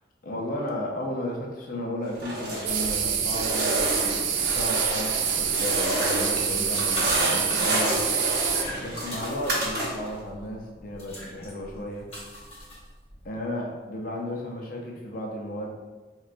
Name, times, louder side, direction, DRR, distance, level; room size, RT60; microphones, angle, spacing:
voice 1, 0.2-8.0 8.8-12.1 13.2-15.7, left 1 dB, 50° left, 0 dB, 0.5 m, -34 dB
sound 1, 2.1-3.0 3.3-6.5 6.7-10.2, right 1 dB, 55° right, 0.7 m, -29 dB
sound 2, 2.7-8.6, right 7 dB, 80° right, 0.4 m, -26 dB
sound 3, 4.5-13.3, left 1 dB, 30° left, 0.9 m, -39 dB
3.9 x 2.2 x 2.5 m, 1.3 s
head